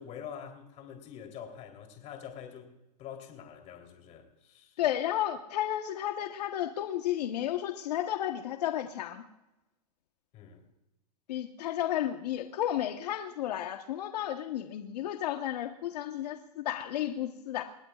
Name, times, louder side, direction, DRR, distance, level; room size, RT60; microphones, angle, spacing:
voice 1, 0.0-4.8 10.3-10.7, left 8 dB, 35° left, 3.5 m, -46 dB
voice 2, 4.8-9.2 11.3-17.6, left 12 dB, 70° left, 1.2 m, -32 dB
30.0 x 17.0 x 2.5 m
hypercardioid pair, 135°, 21 cm